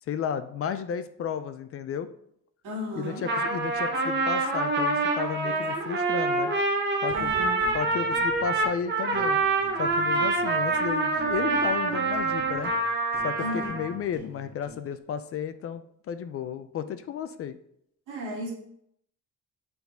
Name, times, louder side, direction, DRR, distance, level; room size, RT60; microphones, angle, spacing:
voice 1, 0.1-2.1 3.0-6.5 7.0-7.3 7.7-9.4 9.8-12.7 13.2-17.6, left 8 dB, 45° left, 12 dB, 0.4 m, -33 dB
voice 2, 2.6-3.3 5.4-5.7 7.1-7.7 13.4-13.7 18.1-18.5, equal, 70° right, -3 dB, 2.1 m, -35 dB
Trumpet, 3.1-13.9, right 3 dB, 35° right, 0.9 m, -26 dB
sound 1, 7.1-8.8 9.1-10.9 11.1-14.9, right 1 dB, 5° right, 1.3 m, -47 dB
6.9 x 4.0 x 3.5 m, 0.72 s
cardioid pair, 130°, 32 cm